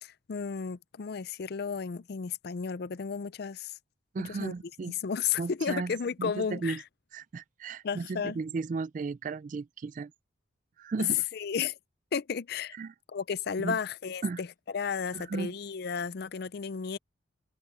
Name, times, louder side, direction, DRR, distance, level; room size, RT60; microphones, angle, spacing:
voice 1, 0.0-3.8 4.2-4.5 4.9-6.8 7.8-8.4 11.3-11.7 12.1-12.8 13.1-14.5 14.7-17.0, left 6 dB, 50° left, 0.4 m, -33 dB
voice 2, 4.1-4.9 5.4-5.9 6.2-6.8 7.1-10.1 10.8-11.2 12.8-12.9 13.6-13.8 14.2-14.4 15.1-15.5, right 4 dB, 40° right, 0.3 m, -35 dB
head